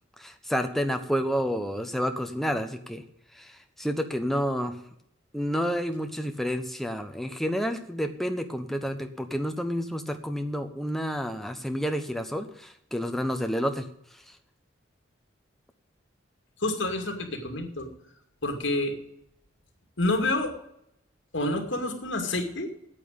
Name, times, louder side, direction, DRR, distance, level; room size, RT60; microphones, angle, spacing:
voice 1, 0.2-3.0 3.4-4.7 5.3-13.9, equal, ahead, 6 dB, 1.0 m, -29 dB
voice 2, 16.6-17.9 18.4-18.9 20.0-20.5 21.3-22.7, left 2 dB, 75° left, 4 dB, 2.4 m, -28 dB
8.9 x 8.6 x 8.7 m, 0.75 s
head